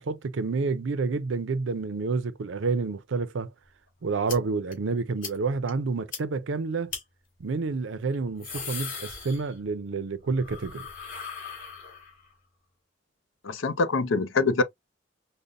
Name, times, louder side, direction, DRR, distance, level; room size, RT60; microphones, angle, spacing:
voice 1, 0.0-3.5 4.0-6.9 7.4-10.9, right 4 dB, 80° right, 0.5 m, -29 dB
sound 1, 4.3-4.4 4.7-4.8 5.2-5.4 5.7-5.8 6.1-6.2 6.9-7.0 8.1-9.8 10.1-12.3, left 6 dB, 45° left, 1.8 m, -38 dB
voice 2, 13.4-14.6, left 3 dB, 85° left, 0.6 m, -24 dB
5.1 x 2.1 x 2.5 m
head